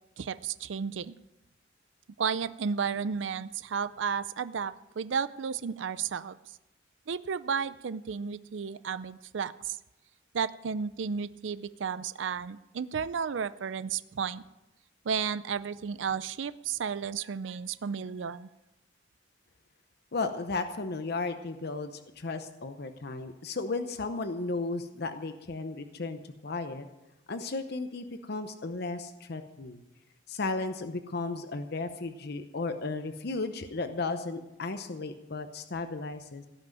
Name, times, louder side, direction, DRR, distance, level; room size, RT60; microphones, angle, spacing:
voice 1, 0.2-1.2 2.2-6.4 7.1-9.8 10.3-14.4 15.1-18.5, right 6 dB, 75° right, 15 dB, 0.5 m, -33 dB
voice 2, 20.1-26.9 27.3-29.8 30.3-36.5, left 3 dB, 60° left, 8 dB, 0.8 m, -34 dB
17.0 x 6.1 x 9.1 m, 0.95 s
head